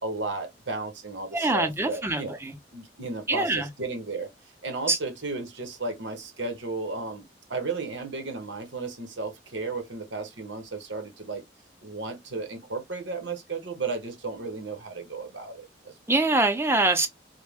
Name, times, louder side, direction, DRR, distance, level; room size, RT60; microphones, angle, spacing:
voice 1, 0.0-2.4 2.7-4.3 4.6-7.2 7.5-11.4 11.8-15.9, right 3 dB, 85° right, 1.0 m, -34 dB
voice 2, 1.3-2.5 3.3-3.7 4.9-5.0 16.1-17.1, right 2 dB, 15° right, 0.6 m, -24 dB
3.3 x 2.2 x 3.4 m
head